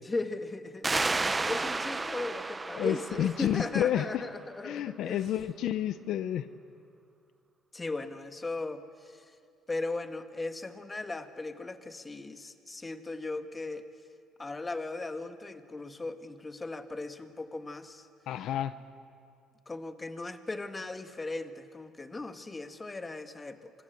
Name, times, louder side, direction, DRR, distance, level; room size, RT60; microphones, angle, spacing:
voice 1, 0.0-1.0 1.4-5.2 7.7-9.3 9.7-13.8 14.4-18.1 19.7-23.7, left 3 dB, 20° left, 8 dB, 1.6 m, -37 dB
sound 1, 0.8-4.2, right 3 dB, 20° right, 0.8 m, -32 dB
voice 2, 2.7-4.1 4.6-6.5 18.3-18.7, left 11 dB, 70° left, 13 dB, 0.8 m, -30 dB
27.5 x 25.5 x 8.0 m, 2.4 s
cardioid pair, 110°, 0 cm